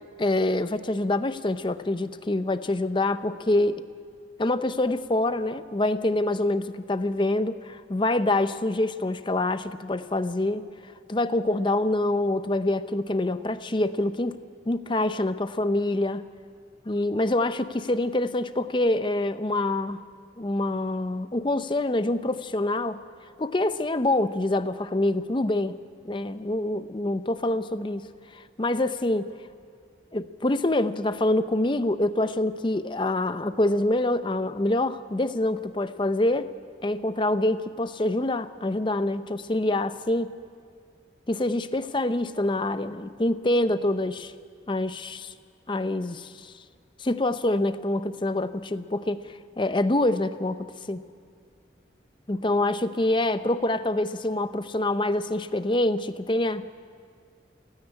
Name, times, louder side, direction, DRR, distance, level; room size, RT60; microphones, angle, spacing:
voice 1, 0.2-3.8 4.4-14.4 14.7-16.2 16.9-20.0 20.4-23.0 23.4-25.8 26.0-28.1 28.3-29.3 30.1-36.5 36.8-40.3 41.3-44.3 44.7-45.3 45.7-46.5 47.0-51.0 52.3-56.7, left 1 dB, 25° left, 12 dB, 0.6 m, -26 dB
28.0 x 9.7 x 9.8 m, 2.2 s
head